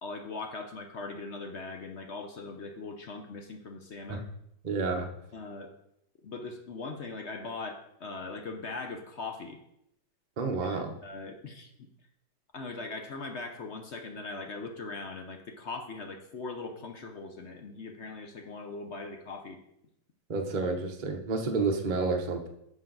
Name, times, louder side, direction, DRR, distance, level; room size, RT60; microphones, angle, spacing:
voice 1, 0.0-4.3 5.3-5.7 6.2-9.6 10.6-11.7 12.5-19.6, left 3 dB, 50° left, 5 dB, 0.9 m, -40 dB
voice 2, 4.6-5.1 10.4-10.9 20.3-22.5, right 4 dB, 35° right, 3 dB, 0.9 m, -30 dB
10.5 x 5.7 x 3.9 m, 0.77 s
omnidirectional pair, 1.8 m